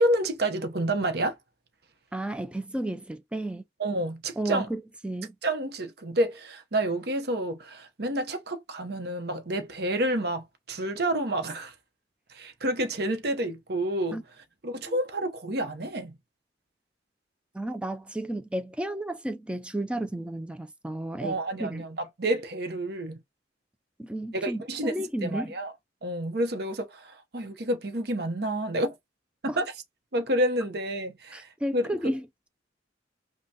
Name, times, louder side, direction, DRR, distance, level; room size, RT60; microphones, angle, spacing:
voice 1, 0.0-1.4 3.8-4.7 5.4-11.7 12.3-14.2 14.6-16.2 21.2-23.2 24.3-25.0 25.2-25.7 26.0-28.9 29.4-29.7 30.1-31.9, right 1 dB, 60° right, 0.9 m, -29 dB
voice 2, 2.1-3.6 4.4-5.3 14.1-14.2 14.8-15.0 17.5-21.8 24.0-25.5 29.5-29.6 31.3-32.2, right 1 dB, 5° right, 0.4 m, -33 dB
5.5 x 2.2 x 2.8 m
head